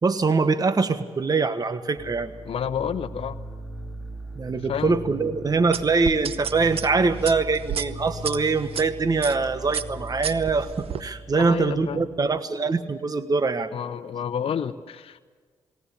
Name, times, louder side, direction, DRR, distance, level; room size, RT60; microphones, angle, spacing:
voice 1, 0.0-2.3 4.4-13.7, right 4 dB, 35° right, 11 dB, 1.3 m, -23 dB
sound 1, 2.0-12.4, right 1 dB, ahead, 2.5 m, -39 dB
voice 2, 2.5-3.4 4.7-5.0 11.4-12.0 13.7-15.2, left 8 dB, 55° left, 9 dB, 0.9 m, -30 dB
sound 2, 5.7-8.8 9.2-9.4 9.7-11.0, right 8 dB, 60° right, 0.8 m, -31 dB
20.0 x 18.5 x 8.5 m, 1.5 s
supercardioid pair, 60°, 11 cm